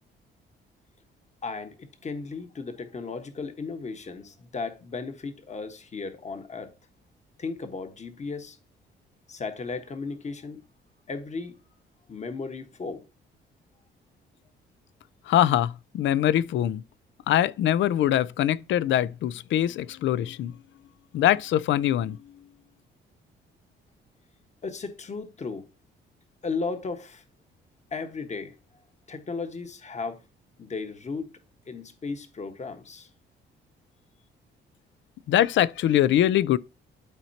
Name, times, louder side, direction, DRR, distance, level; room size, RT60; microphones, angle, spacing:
voice 1, 1.4-6.7 7.4-8.6 9.3-10.6 11.1-11.5 12.1-13.1 24.6-25.7 26.4-27.2 27.9-28.6 29.1-30.2 30.6-31.4 31.7-33.1, left 4 dB, 35° left, 1.4 m, -35 dB
voice 2, 15.3-16.8 17.3-20.5 21.1-22.2 35.3-36.6, left 12 dB, 70° left, 0.5 m, -23 dB
12.0 x 4.4 x 2.8 m
cardioid pair, 90°, 20 cm